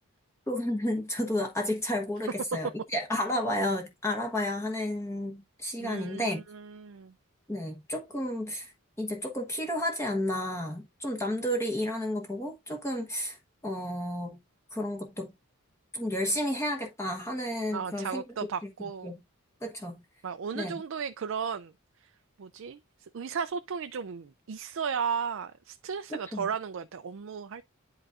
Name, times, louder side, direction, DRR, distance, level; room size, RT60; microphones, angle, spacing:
voice 1, 0.5-6.4 7.5-8.7 9.0-13.4 13.6-14.4 14.7-15.3 15.9-18.2 18.8-19.2 19.6-20.0 20.5-20.7 26.1-26.5, left 1 dB, 15° left, 1.1 m, -32 dB
voice 2, 5.8-7.1 17.7-19.1 20.2-22.1 22.4-27.6, right 6 dB, 60° right, 0.4 m, -35 dB
11.0 x 3.9 x 2.5 m
head